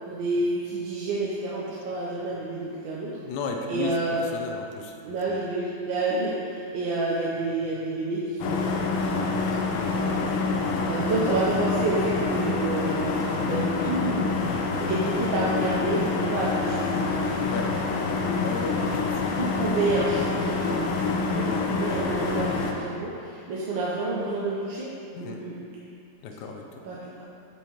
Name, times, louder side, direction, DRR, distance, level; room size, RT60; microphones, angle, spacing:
voice 1, 0.1-3.1 3.7-4.3 5.0-9.7 9.9-10.2 10.8-14.3 14.8-16.9 17.1-17.5 18.7-18.9 19.4-24.9 25.2-25.5 26.8-27.2, right 2 dB, 75° right, -6 dB, 1.4 m, -29 dB
voice 2, 3.2-4.9 5.3-5.4 10.3-10.4 17.5-17.7 18.4-19.4 21.5-21.7 25.1-25.4 26.2-26.6, left 4 dB, 70° left, 3 dB, 1.0 m, -34 dB
sound 1, 8.4-22.7, left 4 dB, 85° left, 1.5 m, -26 dB
8.9 x 4.5 x 3.0 m, 2.5 s
omnidirectional pair, 2.3 m